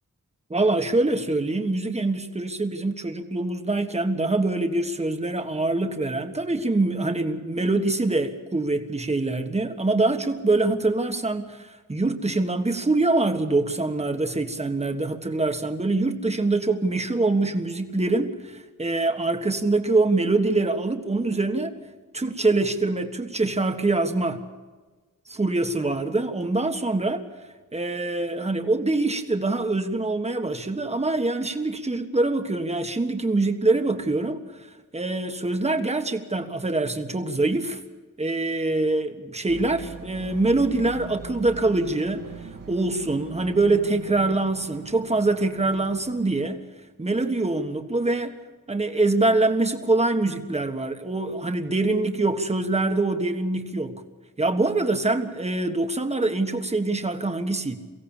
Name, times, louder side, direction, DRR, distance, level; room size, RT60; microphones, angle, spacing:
voice 1, 0.5-21.7 22.1-24.4 25.3-27.2 27.7-34.4 34.9-37.8 38.2-42.2 42.7-46.6 47.0-48.3 48.7-54.0 54.4-57.8, right 2 dB, 20° right, 6 dB, 1.4 m, -24 dB
sound 1, 39.5-46.4, right 5 dB, 75° right, 2.3 m, -41 dB
23.5 x 16.5 x 7.3 m, 1.3 s
wide cardioid pair, 130°, 32 cm